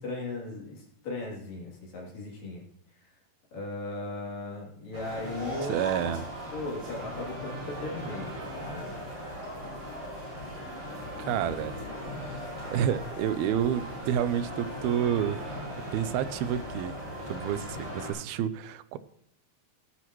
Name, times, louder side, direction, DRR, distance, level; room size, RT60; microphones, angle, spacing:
voice 1, 0.0-2.6 3.5-5.8 6.5-8.3 8.7-8.9, left 2 dB, 65° left, -3 dB, 4.7 m, -37 dB
sound 1, 4.9-18.1, equal, 30° right, 6.0 m, -38 dB
voice 2, 5.7-6.3 11.2-11.8 12.2-12.4 12.7-15.4 15.9-16.9 17.3-17.7 17.9-19.0, right 9 dB, 90° right, 13 dB, 2.6 m, -29 dB
18.0 x 9.9 x 3.1 m, 0.68 s
omnidirectional pair, 4.3 m